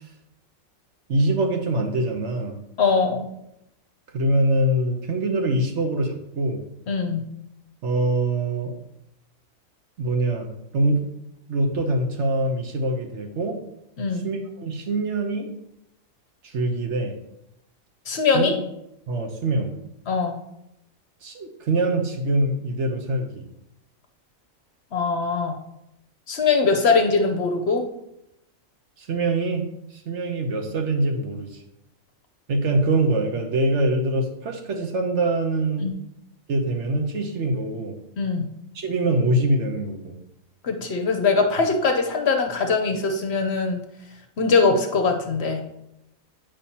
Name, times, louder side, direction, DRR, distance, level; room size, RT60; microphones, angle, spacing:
voice 1, 1.1-2.6 4.1-6.6 7.8-8.8 10.0-11.0 11.5-13.6 14.2-15.5 16.4-17.1 18.3-18.6 19.1-19.7 21.2-23.4 29.0-29.6 29.9-31.6 32.5-35.9 36.5-38.0 38.7-40.2, right 2 dB, 60° right, 3 dB, 1.1 m, -24 dB
voice 2, 2.8-3.3 6.9-7.2 14.0-14.3 18.1-18.5 20.1-20.4 24.9-25.6 26.3-27.8 35.8-35.9 38.2-38.5 40.6-43.8 44.4-45.6, left 4 dB, 60° left, 4 dB, 0.9 m, -22 dB
8.7 x 5.3 x 2.8 m, 0.83 s
omnidirectional pair, 1.4 m